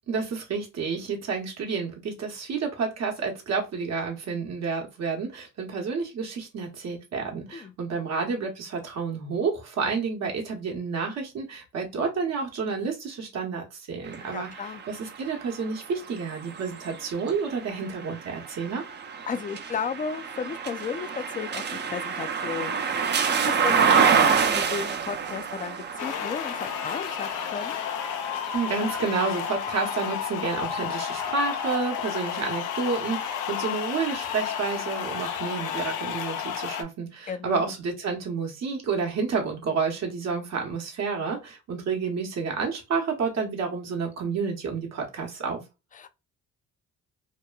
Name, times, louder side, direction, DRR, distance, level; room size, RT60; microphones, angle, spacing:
voice 1, 0.1-18.8 28.5-45.6, right 5 dB, 60° right, 1.0 m, -30 dB
sound 1, 14.1-30.0 30.6-31.8, right 6 dB, 35° right, 0.5 m, -28 dB
voice 2, 14.3-14.8 19.3-27.8 37.3-37.7 45.9-46.1, left 6 dB, 25° left, 0.4 m, -34 dB
sound 2, 26.0-36.8, left 8 dB, 85° left, 0.6 m, -31 dB
2.9 x 2.1 x 2.2 m
cardioid pair, 90°, 30 cm